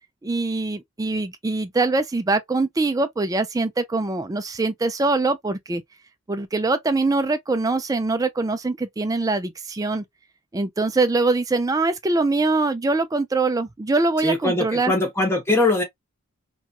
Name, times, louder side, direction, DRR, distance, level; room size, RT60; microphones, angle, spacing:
voice 1, 0.2-5.8 6.3-10.0 10.5-14.9, right 3 dB, 15° right, 0.3 m, -23 dB
voice 2, 14.2-15.8, left 2 dB, 10° left, 0.9 m, -21 dB
2.9 x 2.3 x 2.4 m
head